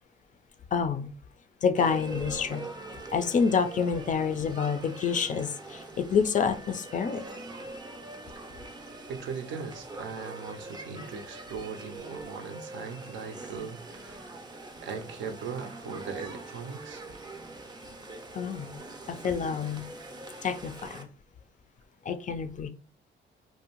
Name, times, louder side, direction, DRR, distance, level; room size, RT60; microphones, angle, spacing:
voice 1, 0.7-1.1 1.6-2.6 3.1-7.3 18.3-18.8 19.1-19.9 20.4-21.1 22.1-22.7, left 6 dB, 40° left, 0.4 m, -28 dB
sound 1, 1.8-21.0, right 2 dB, 20° right, 0.5 m, -43 dB
voice 2, 9.1-14.3 14.8-17.0, right 5 dB, 70° right, 0.5 m, -39 dB
2.6 x 2.1 x 2.9 m
cardioid pair, 90°, 20 cm